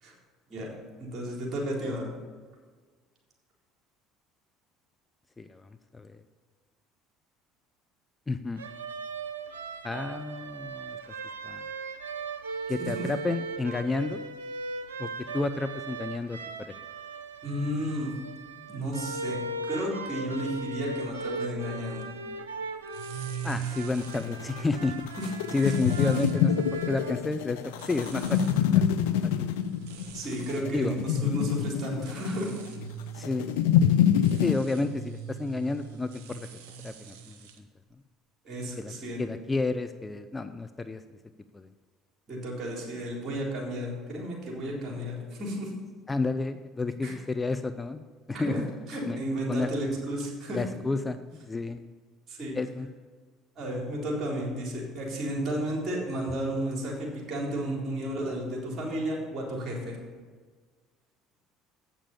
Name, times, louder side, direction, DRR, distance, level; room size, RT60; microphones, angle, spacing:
voice 1, 1.0-2.1 12.8-13.1 17.4-18.1 18.7-19.4 19.7-22.1 25.2-25.3 25.6-25.8 30.1-32.5 38.4-39.2 42.3-45.7 47.0-47.1 48.3-48.6 48.9-50.6 52.3-52.6 53.6-60.0, equal, 45° right, -1 dB, 3.8 m, -33 dB
voice 2, 8.3-8.6 9.8-11.0 11.4-11.6 12.7-14.2 15.0-16.7 23.4-25.1 25.5-28.4 28.7-28.8 29.4-29.5 30.7-31.0 33.2-33.5 34.4-36.5 36.8-37.4 38.8-38.9 39.2-41.0 41.5-41.7 46.1-48.0 48.3-48.6 49.1-49.2 49.5-49.7 50.5-51.2 51.4-51.8 52.5-52.9, left 3 dB, 20° left, 10 dB, 0.6 m, -30 dB
sound 1, 8.6-27.2, right 3 dB, 90° right, 0.6 m, -38 dB
sound 2, 22.9-37.6, right 6 dB, 70° right, 1.2 m, -42 dB
sound 3, 23.9-34.6, left 9 dB, 75° left, 0.4 m, -26 dB
8.8 x 6.8 x 7.1 m, 1.5 s
hypercardioid pair, 65°, 0 cm